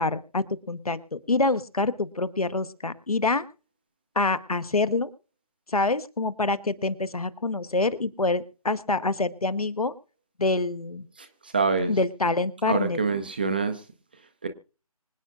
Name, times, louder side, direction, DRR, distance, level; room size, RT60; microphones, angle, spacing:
voice 1, 0.0-3.4 4.1-5.1 5.7-9.9 10.4-11.1 11.9-13.0, left 3 dB, 75° left, 1.1 m, -26 dB
voice 2, 11.2-11.9 12.7-13.8 14.4-14.5, right 4 dB, 15° right, 0.5 m, -26 dB
25.5 x 8.8 x 2.4 m
figure-of-eight pair, 155°, 19 cm